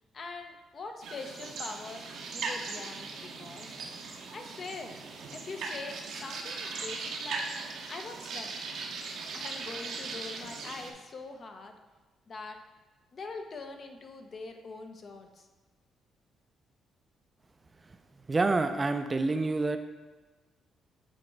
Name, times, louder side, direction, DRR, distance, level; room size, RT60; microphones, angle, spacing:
voice 1, 0.1-3.8 4.3-5.0 5.3-7.5 7.9-8.5 9.3-11.7 12.3-12.6 13.1-15.5, left 3 dB, 45° left, 5 dB, 0.7 m, -43 dB
sound 1, 1.0-10.9, right 4 dB, 75° right, 0.8 m, -39 dB
voice 2, 18.3-19.8, right 3 dB, 25° right, 8 dB, 0.4 m, -27 dB
7.7 x 3.0 x 4.6 m, 1.3 s
cardioid pair, 90°, 0 cm